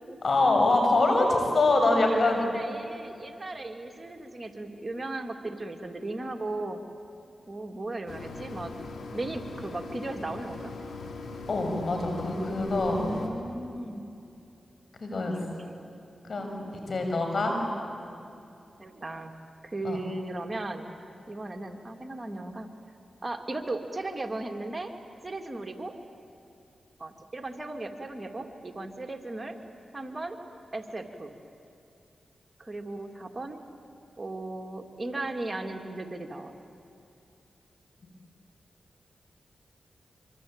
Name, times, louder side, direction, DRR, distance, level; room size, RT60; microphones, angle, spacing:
voice 1, 0.2-2.5 11.5-13.0 15.0-15.3 16.3-16.6 16.9-17.6 19.8-20.0, left 2 dB, 60° left, 3 dB, 6.4 m, -24 dB
voice 2, 2.2-6.8 7.5-8.7 9.1-10.7 12.9-14.0 15.4-15.5 16.6-16.9 18.8-19.3 19.6-20.9 21.3-22.7 23.2-24.9 25.2-26.0 27.0-29.6 29.9-30.4 30.7-31.3 32.6-33.6 34.2-36.5, right 2 dB, 35° right, 5 dB, 2.5 m, -36 dB
sound 1, 8.1-13.3, left 3 dB, 80° left, 3.0 m, -40 dB
25.5 x 25.5 x 8.9 m, 2.6 s
cardioid pair, 45°, 0 cm